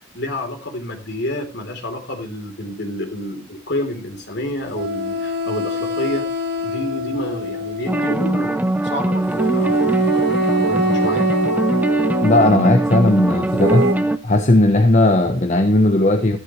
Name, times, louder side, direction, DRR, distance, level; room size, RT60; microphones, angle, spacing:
voice 1, 0.1-6.3 6.6-9.7 10.4-11.3, left 1 dB, 60° left, 4 dB, 3.6 m, -29 dB
sound 1, 4.7-8.2 9.4-12.5 13.6-13.9, right 2 dB, 55° right, 1.7 m, -24 dB
sound 2, 7.9-14.2, right 1 dB, 10° right, 0.6 m, -21 dB
voice 2, 12.2-13.9 14.2-16.4, left 1 dB, 35° left, 5 dB, 1.1 m, -16 dB
14.0 x 12.5 x 3.2 m, 0.30 s
head